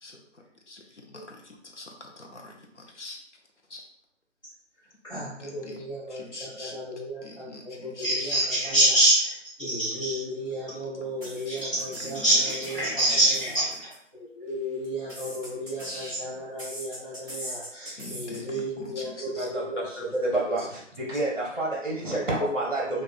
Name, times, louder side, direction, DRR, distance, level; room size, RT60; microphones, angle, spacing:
voice 1, 0.0-0.4 0.7-0.8 1.8-1.9 2.2-3.2 3.7-3.8 5.1-6.8 7.2-8.3 10.7-11.7 12.0-12.3 12.8-13.1 15.8-16.4 18.0-20.0 20.6-20.7, left 2 dB, 65° left, 1 dB, 0.8 m, -44 dB
voice 2, 5.0-20.5 22.8-23.0, right 1 dB, 25° left, -15 dB, 1.4 m, -29 dB
sound 1, 11.2-13.9 14.8-16.2 16.6-18.4, equal, 5° right, 1.3 m, -40 dB
voice 3, 19.4-23.0, right 2 dB, 45° right, -4 dB, 0.8 m, -29 dB
4.0 x 2.5 x 2.2 m, 0.67 s
figure-of-eight pair, 160°, 37 cm